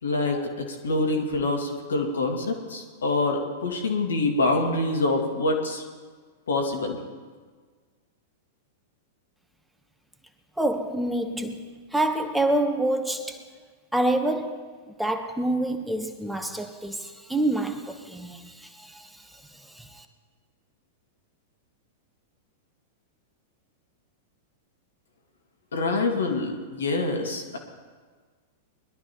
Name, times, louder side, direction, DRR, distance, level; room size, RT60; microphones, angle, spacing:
voice 1, 0.0-5.8 6.5-7.0 25.7-27.6, left 2 dB, 80° left, 2.0 m, -26 dB
voice 2, 10.6-13.4 13.9-14.7 15.0-19.2 19.8-20.0, right 1 dB, 5° right, 1.0 m, -27 dB
21.0 x 12.0 x 3.0 m
hypercardioid pair, 100°, 0 cm